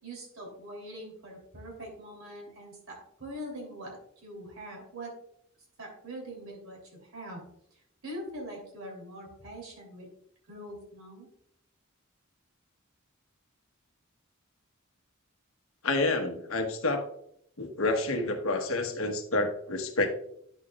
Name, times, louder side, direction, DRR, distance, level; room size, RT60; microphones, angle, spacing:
voice 1, 0.0-5.1 5.8-7.4 7.7-10.1 10.5-11.3, right 1 dB, 75° right, -1 dB, 3.2 m, -43 dB
voice 2, 15.8-17.0 17.6-20.1, left 2 dB, 80° left, 5 dB, 1.2 m, -28 dB
9.9 x 7.0 x 2.4 m, 0.70 s
head